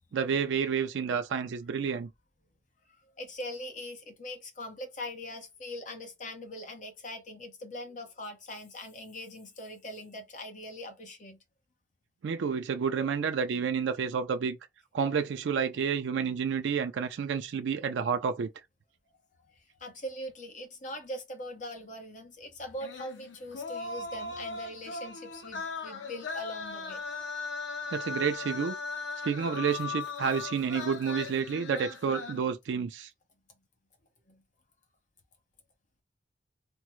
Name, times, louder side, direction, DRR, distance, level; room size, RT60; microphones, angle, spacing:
voice 1, 0.1-2.1 12.2-14.6 14.9-18.5 27.9-28.7 29.2-33.1, right 6 dB, 75° right, 0.4 m, -30 dB
voice 2, 2.9-11.4 19.8-27.0 34.3-34.4, left 1 dB, 40° left, 0.8 m, -42 dB
sound 1, 22.8-32.4, left 4 dB, 80° left, 0.7 m, -38 dB
3.4 x 2.0 x 3.0 m
head